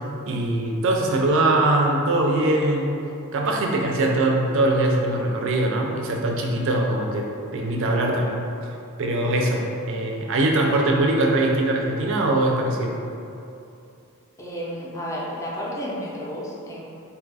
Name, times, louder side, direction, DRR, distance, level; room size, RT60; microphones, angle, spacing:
voice 1, 0.3-2.9 3.3-7.3 7.5-8.4 9.0-13.0, right 2 dB, 60° right, 1 dB, 0.4 m, -22 dB
voice 2, 14.4-16.8, equal, 15° left, -6 dB, 0.5 m, -31 dB
2.7 x 2.3 x 3.9 m, 2.7 s
head